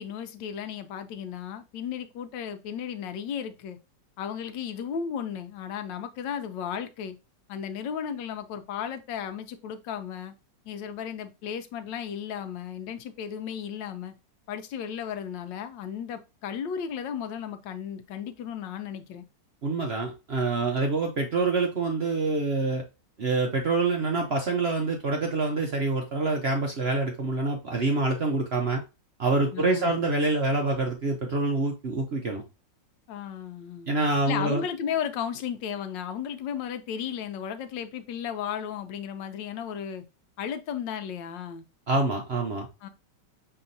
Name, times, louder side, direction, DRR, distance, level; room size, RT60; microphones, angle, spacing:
voice 1, 0.0-3.8 4.2-7.2 7.5-10.3 10.7-14.1 14.5-19.2 29.5-29.9 33.1-33.9 34.3-40.0 40.4-41.6 42.8-42.9, left 8 dB, 85° left, 1.3 m, -34 dB
voice 2, 19.6-22.8 23.2-28.8 29.2-32.4 33.9-34.6 41.9-42.7, right 3 dB, 55° right, 0.7 m, -26 dB
5.7 x 3.4 x 2.6 m
omnidirectional pair, 2.0 m